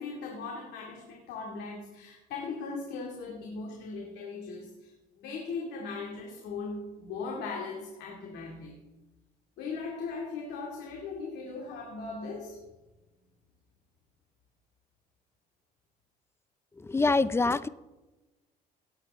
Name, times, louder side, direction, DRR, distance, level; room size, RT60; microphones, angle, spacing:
voice 1, 0.0-4.9 5.2-8.8 9.6-12.6, left 4 dB, 80° left, -1 dB, 2.4 m, -38 dB
voice 2, 16.8-17.7, left 3 dB, 15° left, 17 dB, 0.4 m, -25 dB
18.0 x 8.4 x 3.6 m, 1.1 s
cardioid pair, 110°, 17 cm